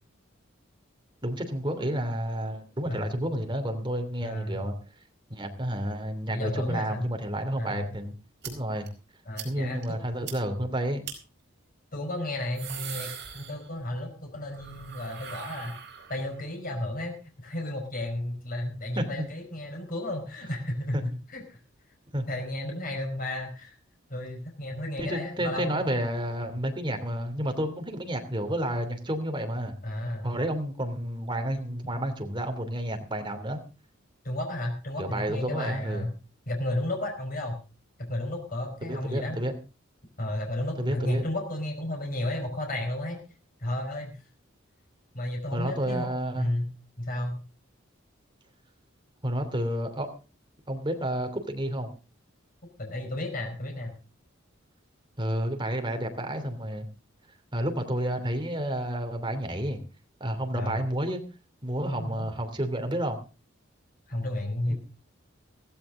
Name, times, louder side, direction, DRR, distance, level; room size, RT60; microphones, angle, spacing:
voice 1, 1.2-4.7 5.3-8.2 8.4-8.9 9.4-11.0 19.0-19.2 20.9-21.1 22.1-22.3 25.0-29.8 30.2-33.6 35.0-36.1 38.8-39.5 40.8-41.2 45.5-46.5 49.2-50.1 50.7-51.9 55.2-56.9 57.5-59.8 60.2-61.2 61.6-63.2 64.7-64.8, right 1 dB, 25° right, 5 dB, 2.8 m, -30 dB
voice 2, 4.2-4.7 6.3-7.1 7.6-7.9 9.3-10.0 11.9-15.8 16.1-17.2 17.4-21.0 21.3-21.6 22.3-23.7 24.1-25.9 29.8-30.3 34.2-36.1 36.5-37.6 38.0-39.4 40.2-43.2 43.6-44.2 45.1-46.1 46.3-46.7 47.0-47.4 52.8-53.9 60.5-60.8 61.8-62.3 64.1-64.8, left 1 dB, 45° left, 2 dB, 4.9 m, -33 dB
sound 1, 8.4-8.5 8.9-9.0 9.4-9.5 9.8-9.9 10.3-10.4 11.0-11.2 12.3-14.0 14.3-16.4, right 8 dB, 60° right, 4.9 m, -41 dB
16.0 x 16.0 x 3.7 m, 0.33 s
head